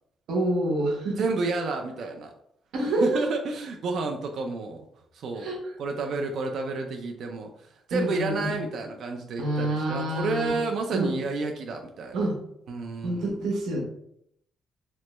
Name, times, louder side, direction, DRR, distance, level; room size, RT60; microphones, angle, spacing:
voice 1, 0.3-1.2 2.7-3.2 5.4-5.6 7.9-8.6 9.4-10.6 10.9-11.2 12.1-12.4 13.0-13.8, right 1 dB, 85° right, -1 dB, 0.9 m, -27 dB
voice 2, 1.2-2.3 3.0-4.9 5.1-12.3 12.7-13.3, right 3 dB, 65° right, 3 dB, 0.4 m, -30 dB
3.0 x 2.2 x 3.0 m, 0.72 s
cardioid pair, 105°, 0 cm